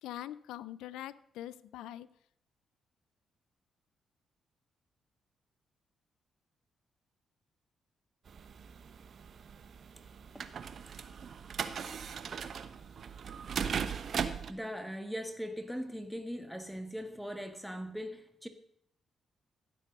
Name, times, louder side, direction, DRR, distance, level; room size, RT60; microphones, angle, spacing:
voice 1, 0.0-2.1, left 13 dB, 80° left, 18 dB, 0.4 m, -43 dB
sound 1, 8.3-14.5, right 7 dB, 60° right, 1.0 m, -38 dB
voice 2, 14.2-18.5, equal, ahead, 7 dB, 1.5 m, -40 dB
15.0 x 7.6 x 6.5 m, 0.70 s
hypercardioid pair, 45°, 0 cm